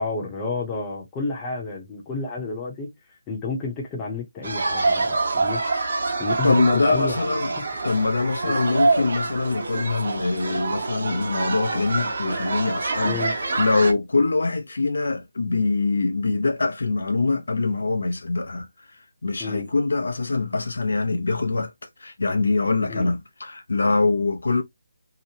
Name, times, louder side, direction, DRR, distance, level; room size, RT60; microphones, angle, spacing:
voice 1, 0.0-2.9 3.3-5.1 5.3-5.6 6.2-7.2 7.6-7.7 8.4-8.6 13.0-13.4 19.4-19.7 22.9-23.1, left 3 dB, 15° left, 0.7 m, -30 dB
sound 1, 4.4-13.9, right 3 dB, 50° right, 1.0 m, -26 dB
voice 2, 6.4-7.5 7.8-13.2 13.6-18.7 19.2-21.7 22.0-24.6, left 3 dB, 75° left, 0.6 m, -23 dB
2.9 x 2.0 x 2.8 m
hypercardioid pair, 170°, 0 cm